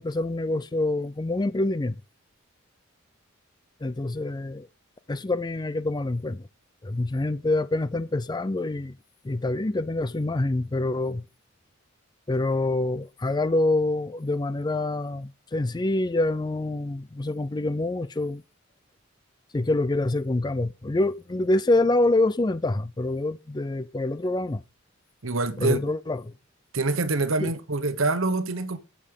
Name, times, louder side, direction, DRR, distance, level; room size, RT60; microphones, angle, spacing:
voice 1, 0.0-2.0 3.8-4.7 5.1-6.5 6.8-8.9 9.2-11.2 12.3-18.4 19.5-24.6 25.6-26.3 27.4-27.5, left 2 dB, 20° left, 0.4 m, -26 dB
voice 2, 25.2-25.9 26.7-28.8, right 3 dB, 75° right, 1.2 m, -25 dB
8.4 x 7.5 x 5.3 m
head